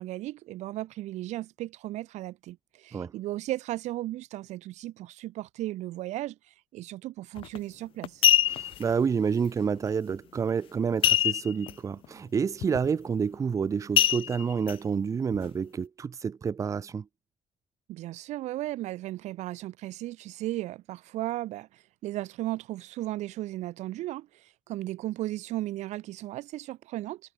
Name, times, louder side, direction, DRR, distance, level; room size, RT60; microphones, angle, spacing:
voice 1, 0.0-6.4 6.7-8.2 17.9-27.2, right 16 dB, 75° right, 4.4 m, -35 dB
sound 1, 7.4-7.6 8.0-8.8 11.0-11.7 12.0-12.1 12.6-12.9 14.0-14.7 15.3-15.4, left 12 dB, 50° left, 0.5 m, -23 dB
voice 2, 8.5-17.0, right 6 dB, 25° right, 1.1 m, -29 dB
cardioid pair, 160°, 12 cm